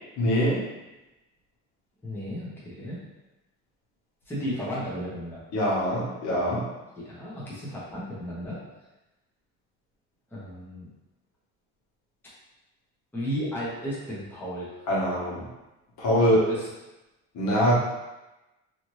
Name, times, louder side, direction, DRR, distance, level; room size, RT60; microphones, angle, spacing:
voice 1, 0.2-0.6 5.5-6.6 14.9-15.4 16.0-16.4 17.3-17.7, equal, 70° left, -6 dB, 1.1 m, -23 dB
voice 2, 2.0-3.0 4.3-5.4 7.0-8.6 10.3-10.9 13.1-14.7 16.2-16.7, equal, 5° left, -8 dB, 0.8 m, -34 dB
2.7 x 2.5 x 3.1 m, 1.0 s
cardioid pair, 150°, 29 cm